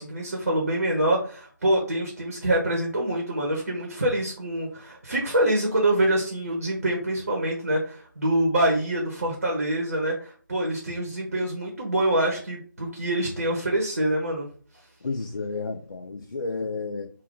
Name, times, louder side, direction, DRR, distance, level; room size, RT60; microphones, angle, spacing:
voice 1, 0.0-14.5, right 1 dB, 45° right, 0.8 m, -25 dB
voice 2, 15.0-17.1, left 3 dB, 70° left, 0.4 m, -31 dB
2.4 x 2.2 x 3.7 m
figure-of-eight pair, 160°, 11 cm